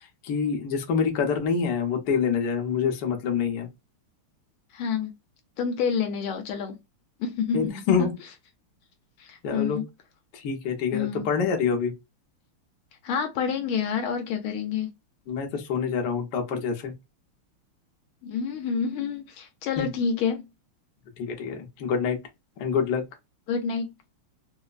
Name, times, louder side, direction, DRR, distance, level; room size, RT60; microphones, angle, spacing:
voice 1, 0.2-3.7 7.5-8.1 9.4-9.8 10.3-11.9 15.3-16.9 19.8-19.9 21.2-22.2 22.6-23.0, left 6 dB, 60° left, 1.2 m, -26 dB
voice 2, 4.7-5.1 5.6-6.8 7.2-8.1 9.2-9.8 10.9-11.2 13.0-14.9 18.2-20.4 23.5-23.9, left 6 dB, 80° left, 1.4 m, -28 dB
4.4 x 2.0 x 2.3 m
omnidirectional pair, 2.4 m